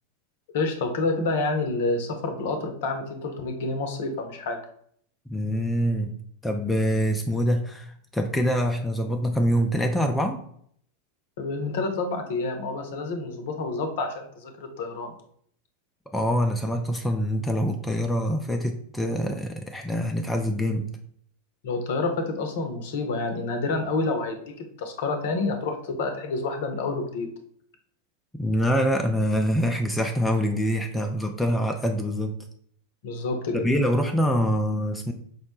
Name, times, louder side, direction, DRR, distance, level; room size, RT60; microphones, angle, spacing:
voice 1, 0.5-4.6 11.4-15.1 21.6-27.3 33.0-33.7, left 3 dB, 55° left, 6 dB, 0.6 m, -28 dB
voice 2, 5.3-6.2 6.4-10.4 16.1-20.9 28.4-32.4 33.5-35.1, equal, 5° left, 3 dB, 0.3 m, -25 dB
4.6 x 2.1 x 2.9 m, 0.64 s
figure-of-eight pair, 90°, 0 cm